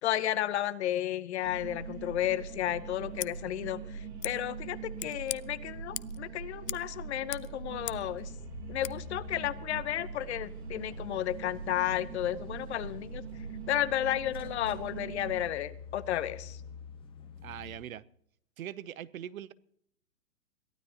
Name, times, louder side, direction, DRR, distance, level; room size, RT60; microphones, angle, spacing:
voice 1, 0.0-8.3 8.7-13.2 13.7-16.6, left 12 dB, 45° left, 16 dB, 0.9 m, -33 dB
sound 1, 1.4-15.4, right 5 dB, 75° right, 3.0 m, -42 dB
Scissors, 3.1-3.3 4.2-4.3 5.0-5.4 5.9-6.2 6.6-6.9 7.1-8.1 8.8-8.9, left 12 dB, 75° left, 0.7 m, -39 dB
sound 2, 7.7-17.8, left 6 dB, 10° left, 1.5 m, -49 dB
voice 2, 17.4-18.0 18.6-19.5, right 11 dB, 60° right, 20 dB, 0.8 m, -41 dB
22.0 x 15.0 x 2.9 m, 0.69 s
hypercardioid pair, 145°, 48 cm